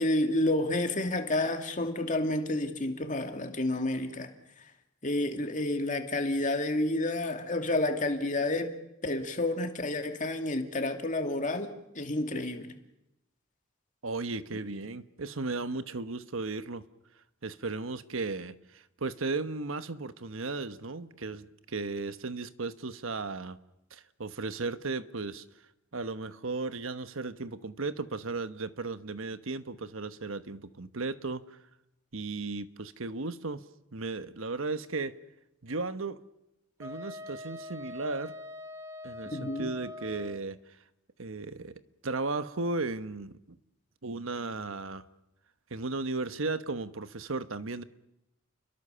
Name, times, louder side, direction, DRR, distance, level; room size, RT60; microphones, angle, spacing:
voice 1, 0.0-4.3 5.0-8.8 9.0-12.7 39.3-39.7, left 2 dB, 40° left, 2.5 m, -30 dB
voice 2, 14.0-16.8 17.4-23.6 23.9-25.4 25.9-31.6 32.1-33.6 33.9-35.2 35.6-36.2 36.8-38.3 39.0-40.6 41.2-41.7 42.0-43.6 44.0-45.0 45.7-47.8, right 3 dB, 80° right, 1.2 m, -35 dB
Wind instrument woodwind instrument, 36.8-40.4, left 2 dB, 15° right, 1.5 m, -43 dB
30.0 x 22.5 x 6.9 m
head